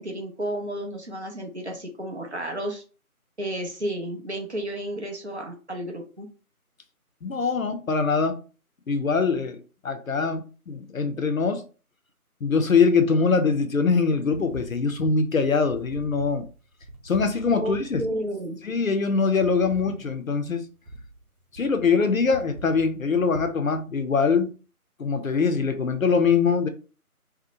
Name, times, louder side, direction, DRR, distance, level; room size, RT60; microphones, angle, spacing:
voice 1, 0.0-2.8 3.4-6.3 17.5-18.6, right 1 dB, 50° right, 0.6 m, -32 dB
voice 2, 7.2-8.4 8.9-11.6 12.4-16.5 17.0-18.0 18.6-20.6 21.5-24.5 25.0-26.7, left 5 dB, 65° left, 0.5 m, -23 dB
sound 1, 13.9-23.5, right 1 dB, 85° right, 0.8 m, -43 dB
2.7 x 2.0 x 2.6 m
figure-of-eight pair, 165°, 45 cm